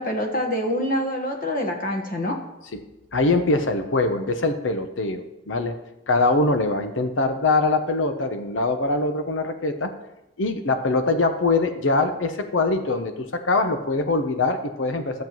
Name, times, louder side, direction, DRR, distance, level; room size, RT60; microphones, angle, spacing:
voice 1, 0.0-2.4, left 1 dB, 45° left, 2 dB, 1.3 m, -25 dB
voice 2, 3.1-5.7 6.1-9.9 10.4-15.2, left 3 dB, 80° left, 8 dB, 0.8 m, -23 dB
14.0 x 7.4 x 3.1 m, 0.93 s
head